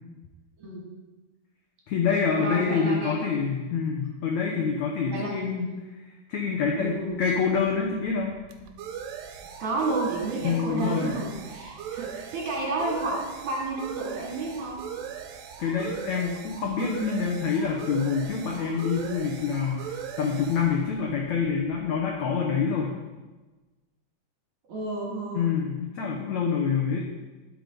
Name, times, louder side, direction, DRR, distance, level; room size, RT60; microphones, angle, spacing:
voice 1, 1.9-5.7 6.3-8.4 10.4-11.1 15.6-22.9 25.3-27.1, left 6 dB, 80° left, -1 dB, 1.6 m, -26 dB
voice 2, 2.4-3.4 4.5-4.6 5.1-5.8 6.8-7.2 9.6-14.9 24.7-25.5, right 2 dB, 50° right, -2 dB, 3.4 m, -31 dB
sound 1, 6.9-22.3, right 8 dB, 85° right, 2.9 m, -40 dB
11.5 x 6.7 x 5.2 m, 1.2 s
omnidirectional pair, 4.8 m